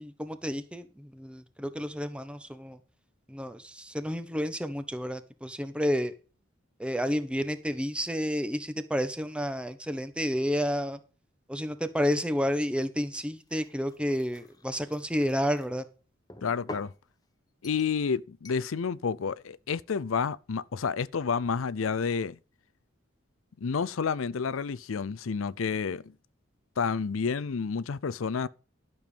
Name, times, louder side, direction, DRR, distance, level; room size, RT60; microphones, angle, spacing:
voice 1, 0.0-2.8 3.3-6.1 6.8-11.0 11.5-15.8, equal, 5° right, 1.1 m, -30 dB
sound 1, 13.4-15.7 16.3-17.0 17.6-18.0 18.4-18.7, left 2 dB, 20° left, 1.1 m, -47 dB
voice 2, 16.4-16.9 17.6-22.4 23.6-26.0 26.8-28.5, left 5 dB, 80° left, 0.5 m, -30 dB
12.0 x 7.1 x 5.1 m
head